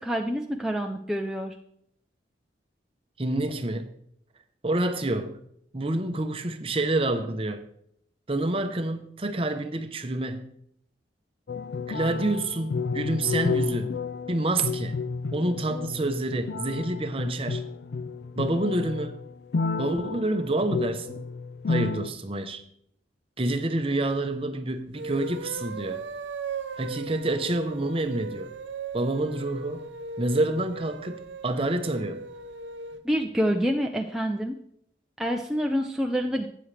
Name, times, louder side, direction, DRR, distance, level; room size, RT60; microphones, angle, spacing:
voice 1, 0.0-1.6 33.0-34.6 35.2-36.5, equal, 5° right, 0.5 m, -27 dB
voice 2, 3.2-3.9 4.6-5.4 5.7-7.6 8.3-10.5 11.9-13.9 14.3-15.0 15.3-17.6 18.4-19.2 19.8-21.3 21.7-22.6 23.4-26.0 26.8-28.5 28.9-29.9 30.2-32.2, right 2 dB, 30° right, 0.8 m, -28 dB
sound 1, 11.5-22.1, left 4 dB, 60° left, 0.4 m, -31 dB
sound 2, 24.9-33.0, right 3 dB, 75° right, 0.7 m, -38 dB
13.0 x 8.7 x 3.3 m
head